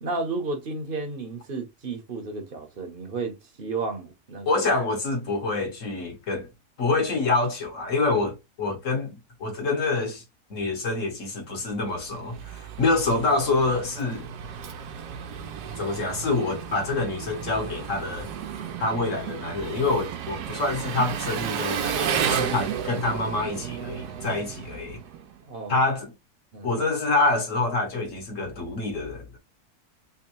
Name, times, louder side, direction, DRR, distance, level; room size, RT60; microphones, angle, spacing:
voice 1, 0.0-4.7 25.5-25.8 26.5-26.8, right 3 dB, 40° right, 0.9 m, -32 dB
voice 2, 4.5-6.5 6.8-10.2 10.5-14.3 15.8-18.3 18.8-25.0 25.7-26.1 26.6-29.4, left 3 dB, 55° left, 1.5 m, -26 dB
Engine, 11.8-25.4, right 8 dB, 90° right, 1.2 m, -33 dB
3.5 x 3.1 x 3.0 m
omnidirectional pair, 1.7 m